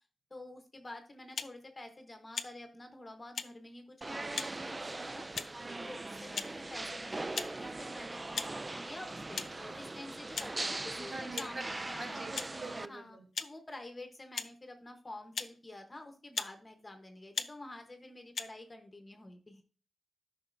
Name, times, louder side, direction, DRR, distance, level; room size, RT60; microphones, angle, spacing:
voice 1, 0.3-5.3 5.8-12.2 12.9-19.6, left 1 dB, 25° left, 5 dB, 1.0 m, -49 dB
sound 1, 1.3-1.5 2.3-2.5 3.3-3.5 4.3-4.5 5.3-5.6 6.3-6.5 7.3-7.5 8.3-8.5 9.3-9.5 10.3-10.5 11.3-11.5 12.3-12.5 13.3-13.5 14.3-14.5 15.3-15.5 16.3-16.5 17.3-17.5 18.3-18.5, left 5 dB, 70° left, 0.5 m, -37 dB
sound 2, 4.0-12.9, right 2 dB, 25° right, 0.3 m, -40 dB
voice 2, 11.0-11.6 11.9-13.2, right 2 dB, 55° right, -1 dB, 2.8 m, -44 dB
12.5 x 5.5 x 2.6 m, 0.38 s
wide cardioid pair, 105°, 0 cm